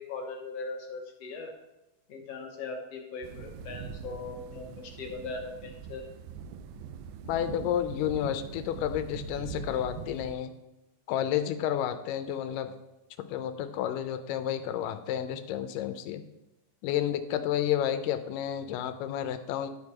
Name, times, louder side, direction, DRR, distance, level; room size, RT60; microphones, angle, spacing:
voice 1, 0.0-1.5 2.1-6.0, left 3 dB, 65° left, 2 dB, 1.8 m, -39 dB
sound 1, 3.2-10.4, right 6 dB, 80° right, 1.8 m, -42 dB
voice 2, 7.3-10.5 11.1-12.7 13.2-16.2 16.8-19.7, left 10 dB, 85° left, 9 dB, 2.3 m, -31 dB
11.5 x 4.6 x 4.8 m, 0.96 s
omnidirectional pair, 3.8 m